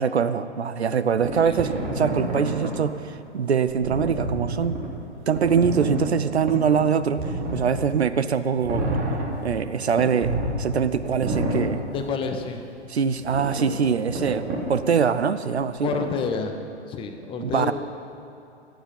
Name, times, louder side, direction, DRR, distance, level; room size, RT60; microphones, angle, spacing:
voice 1, 0.0-4.8 5.3-8.9 9.4-11.8 12.9-15.9 17.4-17.7, right 6 dB, 65° right, 12 dB, 0.8 m, -23 dB
sound 1, 1.2-2.7 3.7-4.9 5.3-6.1 6.5-6.8 7.2-7.9 8.6-9.3 10.0-10.5 11.0-11.6 13.1-13.6 14.1-14.6 15.9-16.0, right 2 dB, 25° right, 3.3 m, -28 dB
voice 2, 11.9-12.6 15.8-16.6 16.9-17.7, left 5 dB, 15° left, 6 dB, 0.9 m, -29 dB
25.5 x 9.4 x 5.7 m, 2.8 s
figure-of-eight pair, 115°, 35 cm